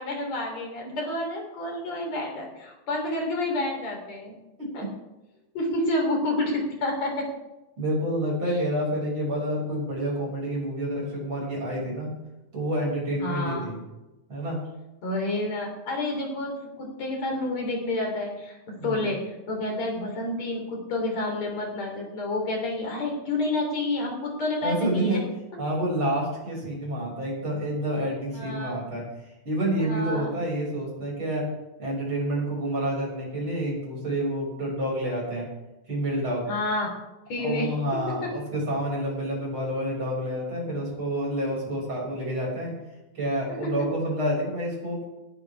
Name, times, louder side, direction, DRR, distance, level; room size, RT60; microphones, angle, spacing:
voice 1, 0.0-4.3 4.7-4.9 5.5-7.3 13.2-13.7 15.0-25.2 28.3-28.9 29.8-30.3 36.5-36.9 37.3-38.3 43.6-43.9, left 2 dB, 55° left, 0 dB, 5.1 m, -29 dB
voice 2, 4.6-4.9 7.8-12.1 12.5-13.8 14.3-14.6 18.8-19.1 24.6-25.2 25.6-29.1 29.5-31.5 31.8-35.5 35.9-36.4 37.4-42.7 43.1-45.0, right 1 dB, 40° right, -3 dB, 7.6 m, -28 dB
19.5 x 14.5 x 3.7 m, 0.99 s
omnidirectional pair, 3.6 m